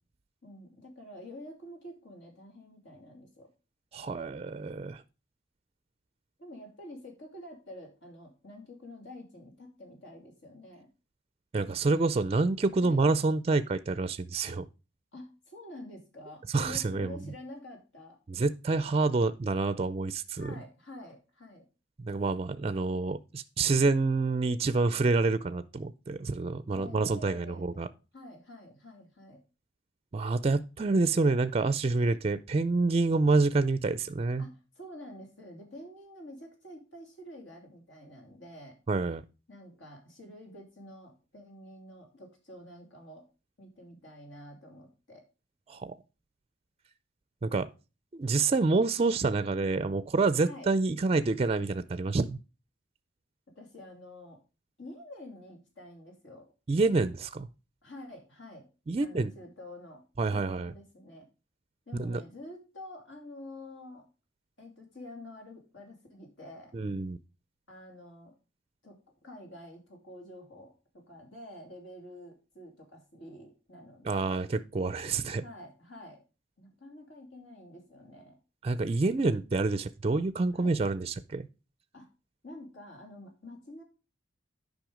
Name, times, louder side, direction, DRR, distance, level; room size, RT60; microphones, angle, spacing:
voice 1, 0.4-3.5 6.4-10.9 12.8-13.0 15.1-18.2 20.4-21.7 26.7-27.8 28.1-29.4 34.4-38.8 39.5-43.3 43.6-45.2 50.4-50.7 53.5-54.4 54.8-56.5 57.8-58.7 59.0-60.0 60.3-61.3 61.9-64.0 64.6-66.7 67.7-68.3 68.8-74.4 75.4-76.2 76.6-78.4 80.5-80.7 81.9-82.1 82.4-83.8, left 1 dB, 75° left, 2.9 m, -48 dB
voice 2, 3.9-5.0 11.5-14.7 16.5-17.2 18.3-20.5 22.0-27.9 30.1-34.4 38.9-39.2 45.7-45.9 47.4-47.7 48.1-52.4 56.7-57.5 58.9-59.3 60.2-60.7 62.0-62.2 66.7-67.2 74.0-74.5 74.7-75.4 78.6-81.5, right 3 dB, 30° right, 0.4 m, -27 dB
9.2 x 5.3 x 5.0 m
head